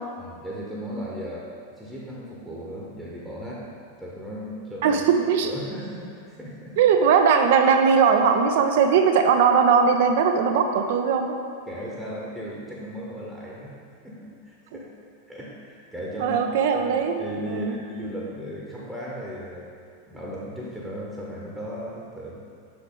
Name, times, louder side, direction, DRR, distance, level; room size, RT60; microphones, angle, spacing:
voice 1, 0.2-1.5 1.8-3.6 4.0-5.1 5.4-6.8 11.7-13.7 14.0-14.9 15.3-16.4 16.7-19.7 20.1-22.4, equal, 5° right, -5 dB, 1.0 m, -36 dB
voice 2, 4.8-5.5 6.8-11.4 16.2-17.8, right 6 dB, 55° right, 6 dB, 0.5 m, -20 dB
5.9 x 5.1 x 3.7 m, 2.3 s
figure-of-eight pair, 90°, 0 cm